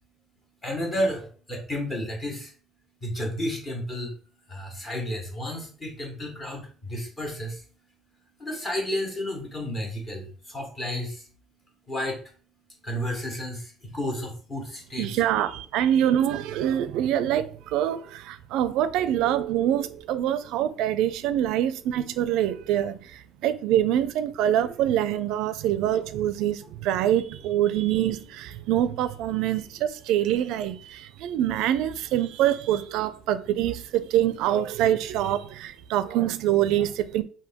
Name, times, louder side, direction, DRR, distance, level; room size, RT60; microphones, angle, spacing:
voice 1, 0.6-2.5 3.0-4.2 4.5-7.6 8.4-11.3 11.9-12.2 12.8-15.1 28.6-28.7, left 1 dB, 20° left, 1.2 m, -32 dB
voice 2, 15.0-37.2, right 11 dB, 70° right, 0.4 m, -25 dB
5.1 x 2.6 x 3.6 m
cardioid pair, 175°, 0 cm